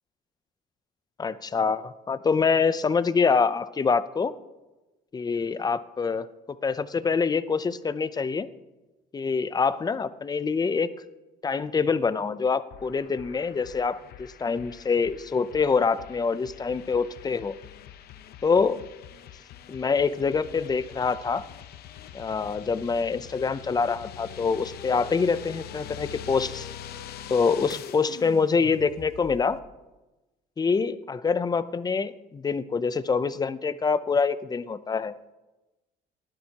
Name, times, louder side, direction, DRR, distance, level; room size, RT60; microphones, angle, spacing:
voice 1, 1.2-4.3 5.1-6.3 6.6-8.5 9.1-10.9 11.4-17.6 18.4-18.8 19.7-21.4 22.1-26.7 27.3-29.6 30.6-35.1, left 5 dB, 25° left, 15 dB, 0.6 m, -25 dB
sound 1, 12.7-29.6, left 10 dB, 70° left, 0.8 m, -44 dB
19.5 x 12.5 x 2.9 m, 1.1 s
cardioid pair, 110°, 17 cm